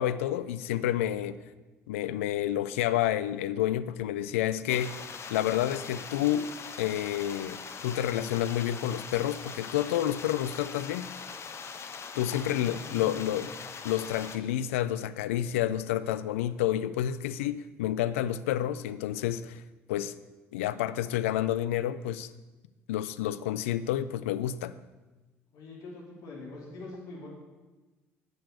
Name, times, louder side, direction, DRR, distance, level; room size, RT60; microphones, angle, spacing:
voice 1, 0.0-1.4 1.9-5.0 5.3-6.5 6.8-11.1 12.2-13.5 13.8-19.6 19.9-20.1 20.5-22.3 22.9-24.8, left 12 dB, 70° left, 14 dB, 0.4 m, -29 dB
sound 1, 4.7-14.4, left 5 dB, 40° left, 1.0 m, -42 dB
voice 2, 12.3-13.4 25.5-27.3, left 2 dB, 55° left, -2 dB, 3.3 m, -44 dB
10.5 x 6.7 x 6.7 m, 1.2 s
figure-of-eight pair, 55°, 7 cm